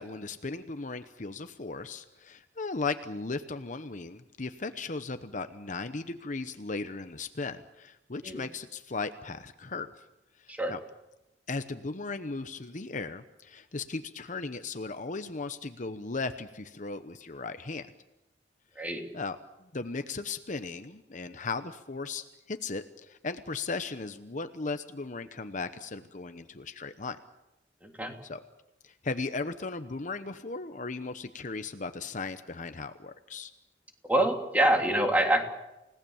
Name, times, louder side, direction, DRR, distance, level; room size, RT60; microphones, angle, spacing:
voice 1, 0.0-9.9 10.4-10.8 11.5-17.9 19.1-27.2 28.2-28.4 28.8-33.5, left 3 dB, 45° left, 10 dB, 1.0 m, -37 dB
voice 2, 27.8-28.1 34.0-35.4, right 1 dB, 10° right, 3 dB, 3.1 m, -26 dB
29.5 x 18.0 x 7.2 m, 0.93 s
head